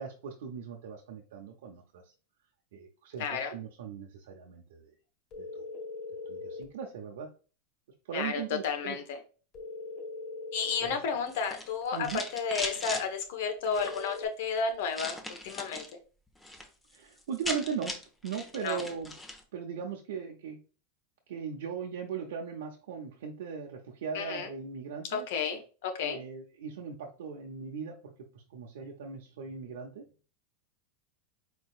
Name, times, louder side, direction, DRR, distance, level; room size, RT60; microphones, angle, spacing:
voice 1, 0.0-2.1 2.7-4.9 5.4-5.6 6.3-7.3 8.1-9.0 10.8-11.0 11.9-12.2 16.9-17.9 18.2-19.1 19.5-20.6 21.3-25.3 26.0-30.0, right 6 dB, 80° right, 0 dB, 0.8 m, -39 dB
voice 2, 3.2-3.5 8.1-9.2 10.5-12.1 12.3-15.2 15.4-15.8 18.6-18.8 24.1-24.5 25.1-26.2, left 6 dB, 70° left, 6 dB, 1.2 m, -32 dB
sound 1, 5.3-6.7 9.5-11.0 13.8-14.2, left 4 dB, 45° left, 1.5 m, -41 dB
sound 2, 11.3-13.0 13.7-14.2 14.9-15.9 16.3-16.7 16.9-17.0 17.2-19.4, left 1 dB, 10° left, 0.9 m, -39 dB
4.5 x 4.4 x 2.5 m, 0.37 s
supercardioid pair, 120°, 0 cm